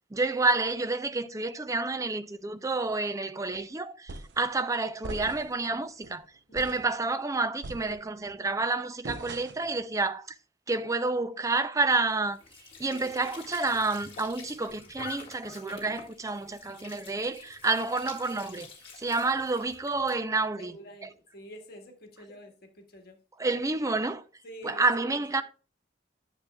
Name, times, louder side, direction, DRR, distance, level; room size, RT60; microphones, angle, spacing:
voice 1, 0.1-6.2 6.5-10.3 10.7-12.4 12.8-18.7 19.0-20.7 23.4-24.2 24.6-25.4, right 3 dB, 20° right, 0.4 m, -29 dB
sound 1, 4.1-4.5 5.0-5.6 6.0-6.2 6.5-6.9 7.6-8.3 9.0-9.8, right 3 dB, 70° right, 0.6 m, -41 dB
voice 2, 6.5-6.8 20.6-23.2 24.4-25.2, equal, 60° left, 1.6 m, -48 dB
Squeak / Sink (filling or washing) / Trickle dribble, 12.3-20.2, left 5 dB, 30° left, 1.9 m, -47 dB
9.6 x 7.0 x 2.3 m
head